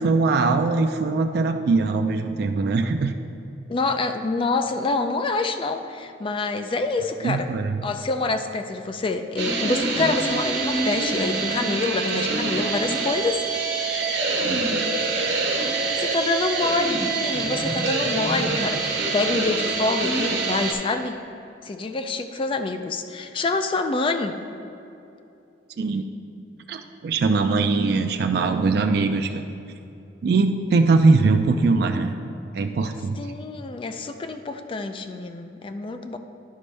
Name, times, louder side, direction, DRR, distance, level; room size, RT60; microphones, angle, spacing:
voice 1, 0.0-3.1 7.2-7.8 14.4-14.9 25.8-26.0 26.7-29.4 30.2-32.1 32.5-33.3, right 3 dB, 60° right, 5 dB, 0.3 m, -21 dB
voice 2, 3.7-7.5 7.8-13.4 16.0-21.2 21.6-24.4 33.1-36.2, left 3 dB, 30° left, 7 dB, 0.4 m, -26 dB
sound 1, 9.4-20.7, right 3 dB, 75° right, 1.2 m, -25 dB
11.0 x 5.2 x 3.3 m, 2.7 s
head